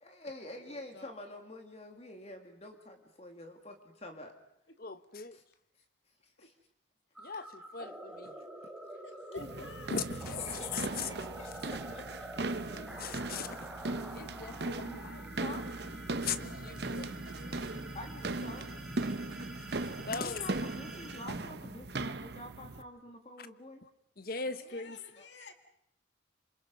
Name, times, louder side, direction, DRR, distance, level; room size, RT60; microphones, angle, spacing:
voice 1, 0.0-4.3 5.3-5.4 6.2-6.5 8.4-8.5 8.8-8.9 10.5-12.8 14.3-14.6 15.4-15.7 17.4-18.7 20.0-23.8 25.2-25.3, left 1 dB, 35° left, 2.3 m, -48 dB
voice 2, 0.5-1.1 6.4-6.5 7.4-7.7 9.0-9.9 24.5-25.5, left 3 dB, 70° left, 2.0 m, -53 dB
voice 3, 4.8-5.4 7.2-8.4 9.3-11.1 11.4-11.5 12.5-13.7 14.1-15.3 16.2-17.2 20.0-20.5 23.4-23.5 23.8-23.9 24.2-25.0, left 5 dB, 50° left, 1.1 m, -40 dB
sound 1, 7.1-22.3, right 1 dB, ahead, 3.0 m, -47 dB
sound 2, 9.4-22.8, right 2 dB, 55° right, 0.8 m, -39 dB
28.0 x 26.0 x 5.4 m
head